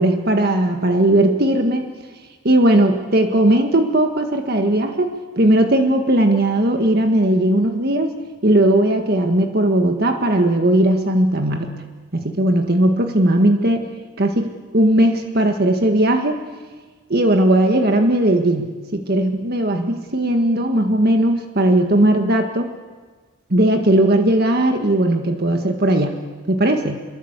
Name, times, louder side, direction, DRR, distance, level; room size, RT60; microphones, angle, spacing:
voice 1, 0.0-1.8 2.4-5.1 5.4-8.1 8.4-11.8 12.1-13.9 14.2-16.4 17.1-22.7 23.5-26.2 26.5-27.0, right 1 dB, 50° right, 4 dB, 1.7 m, -17 dB
26.5 x 23.0 x 8.2 m, 1.4 s
head